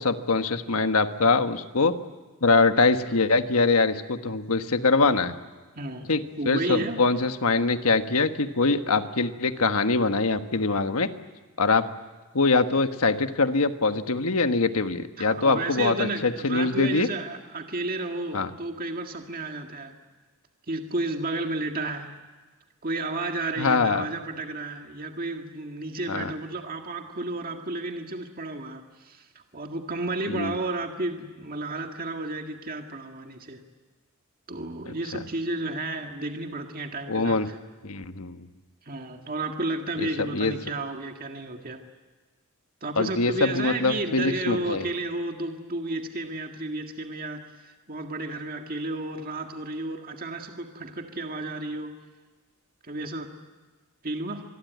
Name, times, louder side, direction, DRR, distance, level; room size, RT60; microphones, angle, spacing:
voice 1, 0.0-2.0 2.4-5.3 6.1-11.1 11.6-11.8 12.3-17.1 18.3-18.5 23.6-24.1 26.1-26.3 30.3-30.5 34.9-35.0 37.1-37.5 37.8-38.4 40.0-40.5 43.0-44.8, left 3 dB, 75° left, 8 dB, 1.4 m, -23 dB
voice 2, 5.8-6.1 6.4-7.0 15.2-19.9 20.7-22.1 22.8-29.3 29.5-33.6 34.5-37.6 38.9-41.8 42.8-51.9 52.8-53.3 54.0-54.4, right 2 dB, 40° right, 4 dB, 1.9 m, -32 dB
25.5 x 21.5 x 9.4 m, 1.3 s
head